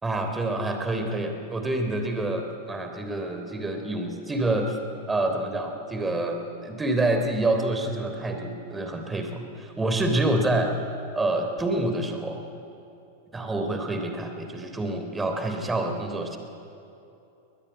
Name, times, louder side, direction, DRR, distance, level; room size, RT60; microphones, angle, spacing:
voice 1, 0.0-4.8 5.1-10.7 11.1-12.4 13.3-16.4, right 2 dB, 10° right, 5 dB, 3.4 m, -27 dB
22.5 x 20.0 x 9.6 m, 2.8 s
figure-of-eight pair, 95°, 0 cm